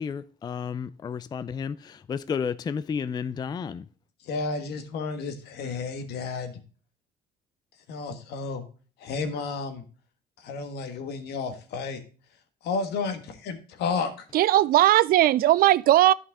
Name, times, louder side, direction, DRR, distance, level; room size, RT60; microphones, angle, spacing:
voice 1, 0.0-3.8, left 6 dB, 25° left, 0.4 m, -32 dB
voice 2, 4.3-6.5 7.9-8.6 9.0-9.8 10.4-12.0 12.6-14.1, left 4 dB, 75° left, 1.6 m, -31 dB
voice 3, 14.3-16.1, right 14 dB, 60° right, 0.4 m, -18 dB
11.5 x 5.4 x 3.6 m
cardioid pair, 110°, 17 cm